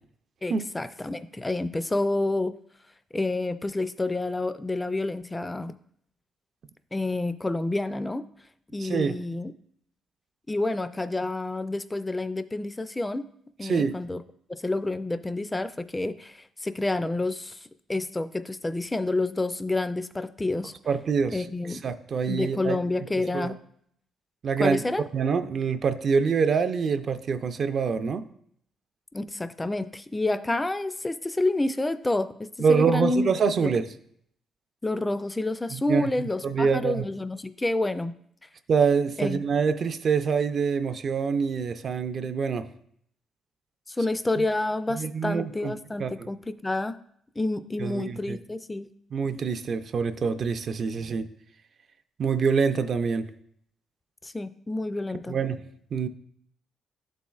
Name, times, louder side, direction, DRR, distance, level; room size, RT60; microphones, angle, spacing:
voice 1, 0.4-2.5 3.1-5.7 6.9-8.2 8.7-9.5 10.5-13.2 13.6-14.2 14.6-17.6 17.9-20.7 21.3-21.8 22.3-23.5 24.6-25.1 29.1-33.3 33.6-33.7 34.8-38.1 39.2-39.4 43.9-47.0 47.4-48.9 54.2-55.4, left 2 dB, 15° left, 12 dB, 0.3 m, -29 dB
voice 2, 8.8-9.2 13.6-13.9 20.9-21.4 21.7-22.8 23.3-23.5 24.4-24.8 25.1-28.2 32.6-33.8 35.7-36.1 36.4-37.1 38.7-42.7 44.4-44.5 44.9-45.7 46.0-46.3 47.8-48.4 49.1-51.3 52.2-53.3 55.3-55.6 55.9-56.1, right 5 dB, 50° right, 9 dB, 0.4 m, -25 dB
11.5 x 4.2 x 2.3 m, 0.69 s
cardioid pair, 95°, 0 cm